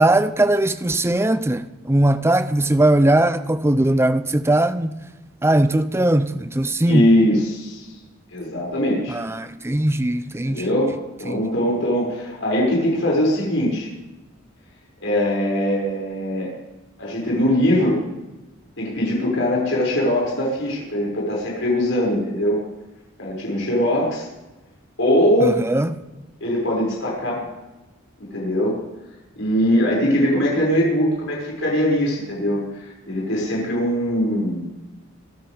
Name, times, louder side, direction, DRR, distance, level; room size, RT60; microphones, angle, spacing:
voice 1, 0.0-5.0 5.4-7.1 9.1-10.6 11.3-11.4 25.4-25.9, right 1 dB, 15° right, 0.6 m, -19 dB
voice 2, 6.8-7.9 8.3-9.2 10.4-10.9 11.2-13.9 15.0-16.5 17.0-18.0 18.8-22.6 23.2-24.2 25.0-25.6 26.4-27.4 28.2-28.8 29.4-34.6, equal, 70° left, 6.5 m, -21 dB
25.5 x 12.5 x 3.6 m
head